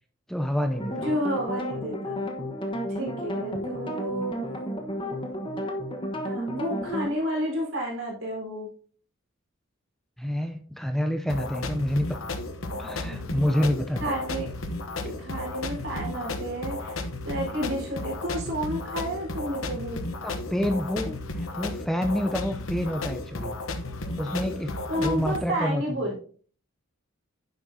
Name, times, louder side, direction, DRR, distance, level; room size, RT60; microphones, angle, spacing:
voice 1, 0.3-1.1 10.2-12.2 12.8-14.0 20.2-23.6 24.2-26.0, equal, ahead, 6 dB, 0.5 m, -28 dB
sound 1, 0.7-7.1, equal, 25° left, 1.2 m, -32 dB
voice 2, 0.9-2.3 2.9-4.5 6.2-8.7 12.7-13.3 14.0-14.5 15.0-20.0 24.9-26.2, equal, 70° right, -2 dB, 4.3 m, -31 dB
sound 2, 11.3-25.4, left 2 dB, 85° left, 1.0 m, -34 dB
9.8 x 7.4 x 2.8 m, 0.43 s
head